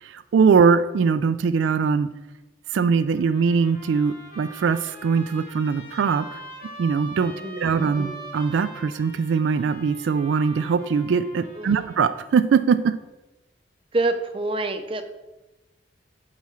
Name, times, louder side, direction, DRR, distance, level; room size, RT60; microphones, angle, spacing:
voice 1, 0.0-2.1 2.7-6.4 6.8-13.0, right 5 dB, 85° right, 11 dB, 0.3 m, -21 dB
Trumpet, 3.1-12.3, right 1 dB, 50° left, 1.5 m, -42 dB
voice 2, 7.3-8.2 11.6-11.9 13.9-15.0, right 2 dB, 30° right, 7 dB, 0.5 m, -28 dB
5.6 x 4.2 x 6.1 m, 1.0 s
head